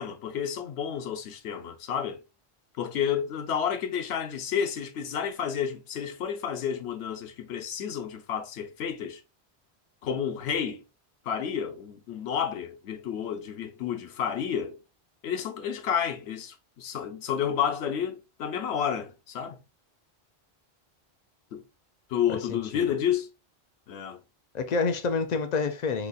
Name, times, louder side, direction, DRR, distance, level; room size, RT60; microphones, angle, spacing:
voice 1, 0.0-2.2 2.8-9.2 10.0-10.8 11.2-14.8 15.2-19.6 21.5-21.6 22.1-23.3 23.9-24.2, left 8 dB, 90° left, 0.9 m, -30 dB
voice 2, 22.3-22.9 24.5-26.1, left 4 dB, 55° left, 0.5 m, -28 dB
4.0 x 2.9 x 2.3 m
omnidirectional pair, 1.1 m